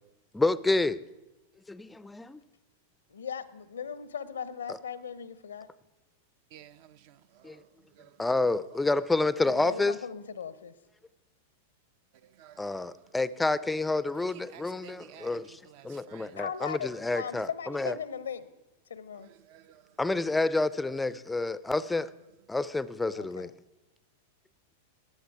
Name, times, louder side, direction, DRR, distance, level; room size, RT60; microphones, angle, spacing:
voice 1, 0.3-1.0 1.7-2.2 8.2-10.0 12.6-15.6 15.8-17.9 20.0-22.1 22.5-23.5, left 2 dB, 10° left, 0.4 m, -28 dB
voice 2, 3.1-5.7 9.4-10.7 16.4-18.5 18.9-19.3 23.1-23.5, left 7 dB, 75° left, 0.6 m, -38 dB
voice 3, 6.5-7.1 7.9-8.3 12.2-13.1 14.1-16.4 19.2-20.0, right 11 dB, 50° right, 0.5 m, -53 dB
15.5 x 10.0 x 4.8 m
figure-of-eight pair, 95°, 0 cm